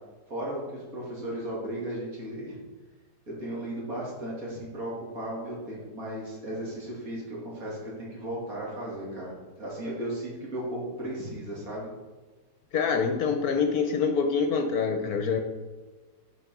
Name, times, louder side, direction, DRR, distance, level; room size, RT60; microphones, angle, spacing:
voice 1, 0.3-2.6 3.3-11.9, right 1 dB, 50° right, -5 dB, 3.1 m, -35 dB
voice 2, 12.7-15.4, left 5 dB, 65° left, 5 dB, 1.2 m, -25 dB
8.0 x 5.4 x 6.0 m, 1.3 s
omnidirectional pair, 1.9 m